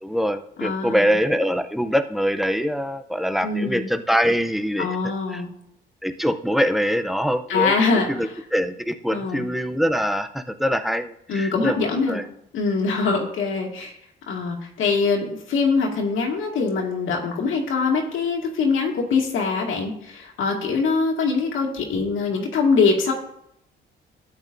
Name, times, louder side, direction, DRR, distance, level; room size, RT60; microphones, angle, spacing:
voice 1, 0.0-5.0 5.3-5.4 6.0-7.7 8.1-12.3, equal, ahead, 8 dB, 0.6 m, -24 dB
voice 2, 0.6-1.2 3.4-3.9 4.8-5.5 7.5-8.3 9.1-9.5 11.3-12.2 12.5-13.9 14.3-23.1, left 4 dB, 80° left, 0 dB, 2.1 m, -23 dB
13.0 x 8.5 x 2.7 m, 0.75 s
cardioid pair, 90°, 20 cm